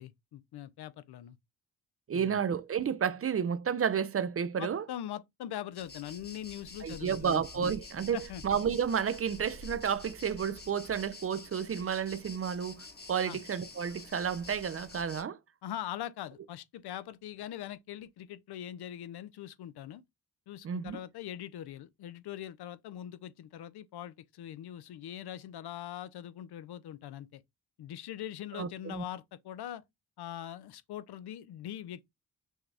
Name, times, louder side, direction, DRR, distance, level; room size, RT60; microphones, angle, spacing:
voice 1, 0.0-1.4 2.1-2.3 4.6-7.7 8.1-8.4 13.3-13.4 15.6-20.0 20.5-27.4 27.8-29.8 30.2-32.0, left 11 dB, 75° left, 0.5 m, -42 dB
voice 2, 2.1-4.8 6.8-15.4 20.6-21.0 28.5-29.0, right 7 dB, 35° right, 0.4 m, -31 dB
sound 1, 5.8-15.2, left 3 dB, 25° left, 1.0 m, -48 dB
6.2 x 2.3 x 3.3 m
cardioid pair, 70°, 39 cm